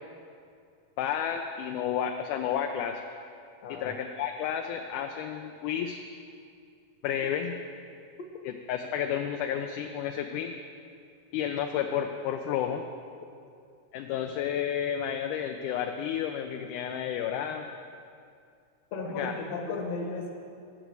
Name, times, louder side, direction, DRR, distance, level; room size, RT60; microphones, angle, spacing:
voice 1, 1.0-3.0 3.7-6.0 7.0-7.5 8.7-10.5 11.3-12.8 13.9-17.7 19.2-19.3, left 9 dB, 80° left, 4 dB, 1.9 m, -31 dB
voice 2, 3.6-4.0 18.9-20.3, left 3 dB, 60° left, 1 dB, 2.0 m, -34 dB
10.0 x 6.1 x 8.0 m, 2.4 s
omnidirectional pair, 3.8 m